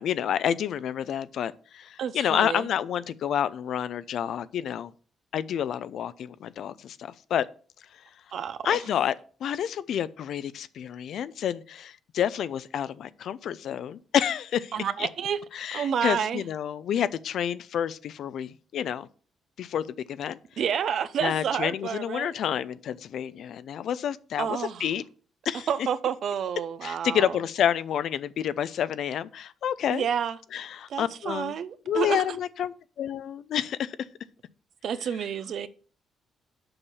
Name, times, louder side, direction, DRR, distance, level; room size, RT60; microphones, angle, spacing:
voice 1, 0.0-4.9 5.3-7.5 8.6-9.1 9.4-14.7 15.0-15.1 15.5-19.1 19.6-20.4 21.2-25.0 25.4-25.7 26.8-30.1 30.5-31.5 31.9-34.0, left 9 dB, 70° left, 0.6 m, -29 dB
voice 2, 2.0-2.7 8.3-8.8 14.7-16.4 20.6-22.3 24.4-24.9 25.7-27.4 29.9-30.4 30.9-32.4 34.8-35.7, right 8 dB, 65° right, 0.7 m, -29 dB
6.9 x 5.5 x 7.0 m
cardioid pair, 90°, 0 cm